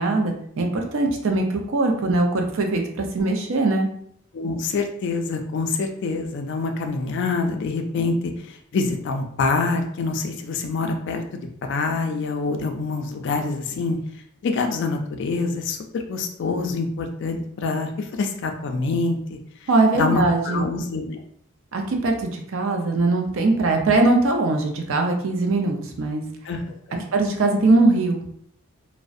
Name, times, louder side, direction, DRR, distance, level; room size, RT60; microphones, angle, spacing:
voice 1, 0.0-3.9 19.7-20.7 21.7-26.2 27.1-28.3, right 2 dB, 65° right, 3 dB, 0.4 m, -21 dB
voice 2, 4.3-11.2 11.6-14.0 14.4-19.4 19.9-21.2 26.4-27.0, left 3 dB, 55° left, 5 dB, 0.3 m, -26 dB
2.5 x 2.0 x 2.3 m, 0.66 s
head